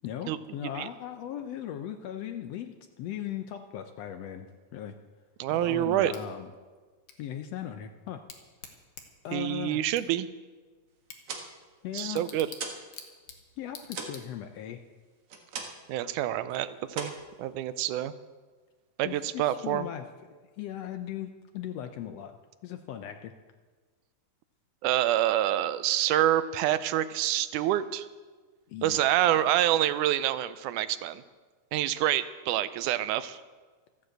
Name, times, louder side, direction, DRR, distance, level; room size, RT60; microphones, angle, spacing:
voice 1, 0.0-4.9 5.5-6.5 7.2-8.2 9.2-9.9 11.8-12.2 13.6-14.8 19.0-22.3 22.6-23.3 28.7-29.7, left 10 dB, 75° left, 8 dB, 1.5 m, -38 dB
voice 2, 5.4-6.1 9.3-10.3 11.9-12.5 15.6-17.1 17.4-18.1 19.0-19.9 24.8-28.1 28.8-31.2 31.7-33.4, right 12 dB, 85° right, 14 dB, 2.1 m, -27 dB
Bicycle / Tick, 6.1-14.7, left 6 dB, 55° left, 1.8 m, -51 dB
sound 1, 11.0-12.9 13.2-16.0 16.3-16.6 16.9-18.0, right 4 dB, 55° right, 2.2 m, -40 dB
14.0 x 9.7 x 7.9 m, 1.4 s
omnidirectional pair, 3.6 m